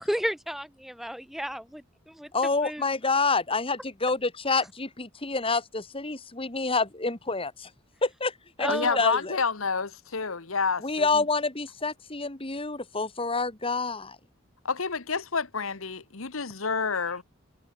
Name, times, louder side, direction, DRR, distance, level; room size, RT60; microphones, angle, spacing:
voice 1, 0.0-2.3 2.6-2.9 8.6-9.0, equal, ahead, 2.4 m, -32 dB
voice 2, 2.3-7.7 8.0-9.4 10.8-14.2, left 3 dB, 25° left, 2.3 m, -28 dB
voice 3, 8.6-11.2 14.6-17.2, left 5 dB, 80° left, 1.4 m, -29 dB
head